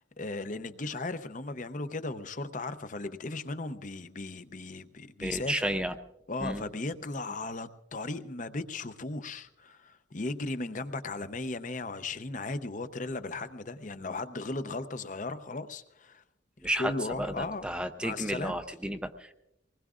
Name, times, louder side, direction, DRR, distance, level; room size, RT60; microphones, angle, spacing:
voice 1, 0.0-5.7 6.3-16.2 16.8-17.7 18.0-18.6, left 3 dB, 40° left, 11 dB, 0.7 m, -36 dB
voice 2, 5.2-6.0 6.4-6.7 16.6-16.9 17.2-19.3, right 1 dB, 5° right, 7 dB, 0.5 m, -32 dB
24.5 x 20.0 x 2.5 m, 0.89 s
head